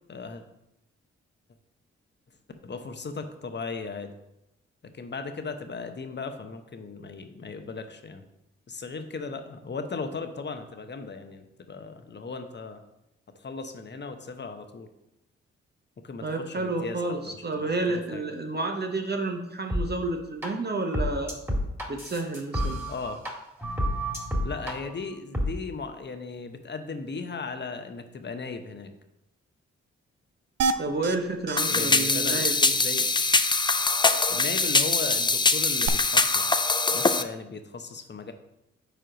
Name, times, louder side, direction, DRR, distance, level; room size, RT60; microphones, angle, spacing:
voice 1, 0.1-0.4 2.6-4.1 4.9-8.2 8.7-12.8 13.4-14.9 16.0-17.0 17.3-18.3 22.9-23.2 24.4-28.9 31.7-33.1 34.3-38.3, left 4 dB, 35° left, 7 dB, 0.9 m, -37 dB
voice 2, 16.2-21.3 21.9-22.8 30.8-32.7, right 2 dB, 35° right, 4 dB, 0.9 m, -30 dB
sound 1, 19.7-19.8 20.4-20.5 20.9-23.3 23.6-24.7 25.3-25.5, equal, 5° right, 1.9 m, -29 dB
sound 2, 30.6-31.2 31.5-31.6 31.9-32.0 32.3-32.5 35.8-35.9, right 5 dB, 60° right, 0.5 m, -27 dB
sound 3, 31.6-37.2, left 3 dB, 15° left, 0.4 m, -23 dB
5.1 x 4.4 x 5.0 m, 0.87 s
supercardioid pair, 40°, 29 cm